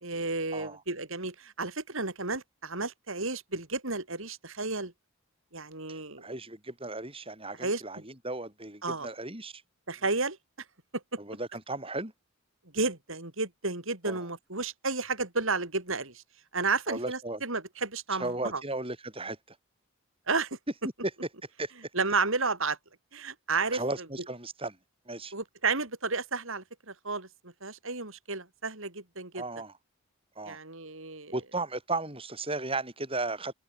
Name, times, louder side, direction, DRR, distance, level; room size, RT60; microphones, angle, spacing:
voice 1, 0.0-4.9 5.5-6.4 7.6-7.8 8.8-9.1 9.9-10.4 10.9-11.0 12.7-16.2 16.5-18.6 20.3-20.6 21.9-22.8 23.1-23.8 25.3-29.4 30.4-31.3, right 3 dB, 65° right, 4.4 m, -32 dB
voice 2, 5.9-9.6 11.2-12.1 14.0-14.3 16.9-17.4 18.2-19.4 21.6-21.7 23.7-24.8 25.1-25.3 29.3-29.7 30.3-30.6 31.3-33.5, right 2 dB, 25° right, 6.8 m, -35 dB
head